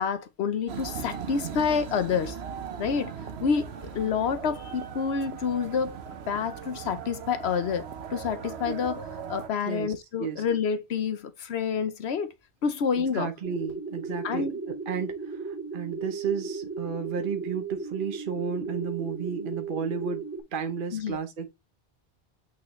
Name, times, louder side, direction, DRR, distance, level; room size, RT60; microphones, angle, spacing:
voice 1, 0.0-2.4 2.8-6.0 6.3-12.3 12.6-13.3 14.2-14.5 20.9-21.2, left 6 dB, 80° left, 1.0 m, -28 dB
sound 1, 0.7-9.5, right 7 dB, 80° right, 1.1 m, -38 dB
voice 2, 13.0-21.5, right 6 dB, 55° right, 1.0 m, -33 dB
sound 2, 13.4-20.4, right 4 dB, 15° right, 2.9 m, -36 dB
8.6 x 4.4 x 3.1 m
omnidirectional pair, 1.1 m